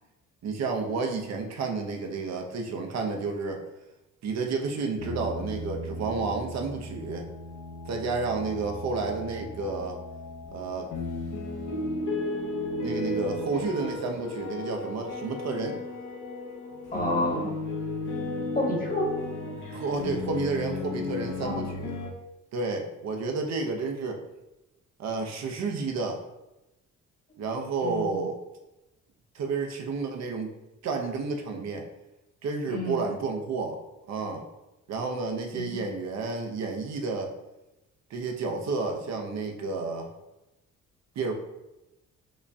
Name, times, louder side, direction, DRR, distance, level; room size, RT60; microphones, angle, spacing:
voice 1, 0.4-3.6 4.2-7.3 7.9-10.0 10.5-10.9 12.8-15.8 19.7-21.9 22.5-24.2 25.0-26.2 27.4-28.4 29.3-30.5 30.8-31.9 32.4-33.8 34.1-34.4 34.9-37.3 38.1-40.1 41.2-41.3, right 4 dB, 60° right, 3 dB, 0.6 m, -31 dB
sound 1, 5.0-22.1, left 2 dB, 80° left, 0.8 m, -35 dB
voice 2, 16.9-17.5 18.5-19.1 21.4-21.7 27.8-28.2 32.7-33.0 35.5-35.8, left 1 dB, 30° left, 0 dB, 1.1 m, -29 dB
5.0 x 2.2 x 2.6 m, 0.95 s
cardioid pair, 90°, 30 cm